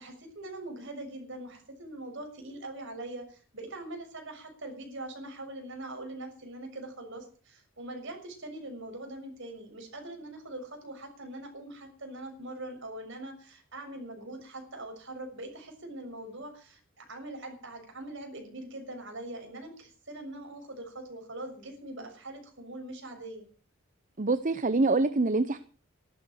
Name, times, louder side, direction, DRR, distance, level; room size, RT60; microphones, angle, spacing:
voice 1, 0.0-23.4, right 1 dB, 60° right, 4 dB, 6.4 m, -42 dB
voice 2, 24.2-25.6, right 3 dB, 40° right, 12 dB, 0.8 m, -25 dB
14.0 x 12.5 x 6.5 m, 0.40 s
head